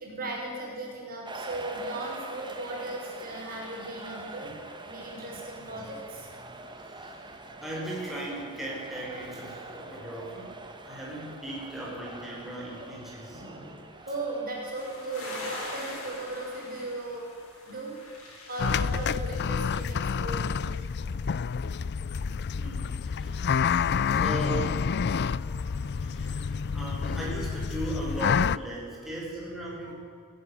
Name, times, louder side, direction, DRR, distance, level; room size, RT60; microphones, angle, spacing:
voice 1, 0.0-4.5 4.8-6.3 13.3-17.3 17.7-17.9 18.5-20.6 23.3-23.4 25.1-26.5 28.3-28.4 29.8-29.9, right 2 dB, 45° right, -1 dB, 6.2 m, -37 dB
sound 1, 1.2-15.4, right 2 dB, 20° right, 1.9 m, -44 dB
voice 2, 6.7-10.5 10.8-13.4 21.0-21.2 22.6-23.5 24.1-24.9 26.0-29.9, right 1 dB, ahead, -5 dB, 5.8 m, -38 dB
sound 2, 14.7-20.8, left 2 dB, 80° left, 7.6 m, -43 dB
sound 3, 18.6-28.6, left 6 dB, 50° left, 0.4 m, -28 dB
18.0 x 17.5 x 10.0 m, 2.3 s
head